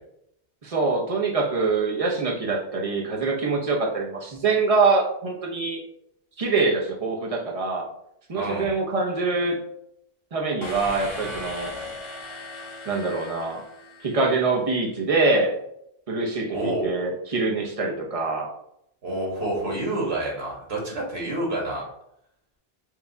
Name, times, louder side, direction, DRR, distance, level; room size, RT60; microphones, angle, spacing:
voice 1, 0.6-5.8 6.4-7.9 8.3-9.6 10.3-11.7 12.8-13.6 14.0-15.6 16.1-18.5, right 3 dB, 40° right, 0 dB, 0.8 m, -24 dB
voice 2, 8.3-8.7 16.5-16.8 19.0-21.8, right 1 dB, 90° right, -2 dB, 1.6 m, -28 dB
sound 1, 10.6-14.4, left 2 dB, 35° left, 0.7 m, -38 dB
4.6 x 2.3 x 3.8 m, 0.76 s
omnidirectional pair, 1.0 m